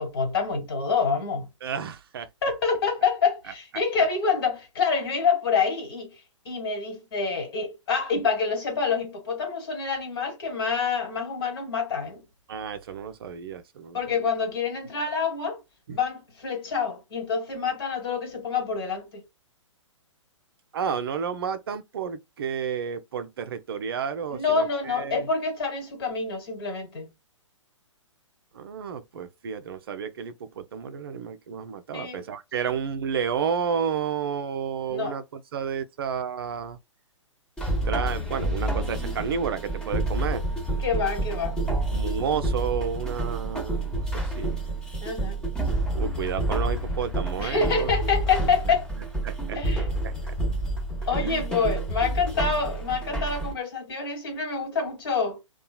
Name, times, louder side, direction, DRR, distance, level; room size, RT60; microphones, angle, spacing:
voice 1, 0.0-1.5 2.4-6.1 6.4-12.2 13.9-15.6 15.9-19.2 24.3-27.1 31.9-32.2 32.6-32.7 34.9-35.2 40.8-41.6 45.0-45.4 47.4-48.8 49.5-49.9 51.1-55.4, left 5 dB, 50° left, 1.5 m, -27 dB
voice 2, 1.6-2.3 12.5-14.0 15.9-16.0 20.7-25.3 28.5-36.8 37.9-40.5 41.9-44.6 45.9-47.9 49.2-49.6 50.0-50.4 51.1-51.4, right 7 dB, 45° right, 0.5 m, -31 dB
sound 1, 37.6-53.5, right 1 dB, 5° left, 0.7 m, -29 dB
2.8 x 2.3 x 2.2 m
figure-of-eight pair, 120°, 16 cm